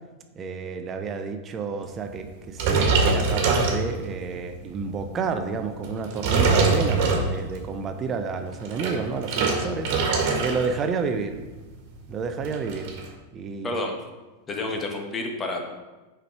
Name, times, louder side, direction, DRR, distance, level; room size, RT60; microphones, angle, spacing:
voice 1, 0.3-10.1 10.4-11.4 12.1-12.9 13.3-13.8, right 5 dB, 25° right, 7 dB, 0.8 m, -30 dB
sound 1, 2.5-4.3 4.8-5.1 5.8-7.6 8.5-10.7 11.0-11.3 11.6-11.7 11.9-13.0, right 4 dB, 45° right, 1.7 m, -23 dB
voice 2, 14.5-15.6, left 2 dB, 20° left, 2 dB, 1.3 m, -29 dB
7.8 x 5.0 x 4.6 m, 1.2 s
figure-of-eight pair, 90°, 0 cm